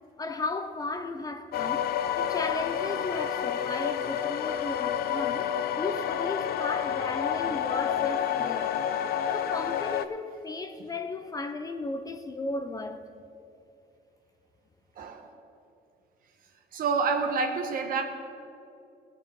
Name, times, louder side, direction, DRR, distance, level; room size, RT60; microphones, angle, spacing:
voice 1, 0.2-1.9 2.2-8.7 9.3-13.2, left 3 dB, 20° left, 0.6 m, -35 dB
sound 1, 1.5-10.0, left 9 dB, 65° left, 0.6 m, -29 dB
voice 2, 16.7-18.0, right 4 dB, 55° right, 1.4 m, -27 dB
18.5 x 8.3 x 3.7 m
cardioid pair, 110°, 17 cm